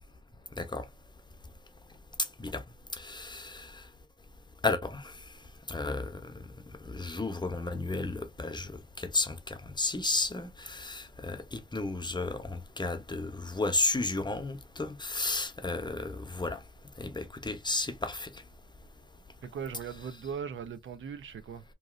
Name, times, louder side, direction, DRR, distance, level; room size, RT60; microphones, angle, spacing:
voice 1, 3.0-3.8 4.6-5.1 5.7-6.3 6.8-8.7 9.0-16.6 17.0-18.3, left 3 dB, 20° left, 0.7 m, -33 dB
voice 2, 19.5-21.6, right 7 dB, 85° right, 0.5 m, -39 dB
2.9 x 2.6 x 2.4 m
cardioid pair, 70°, 20 cm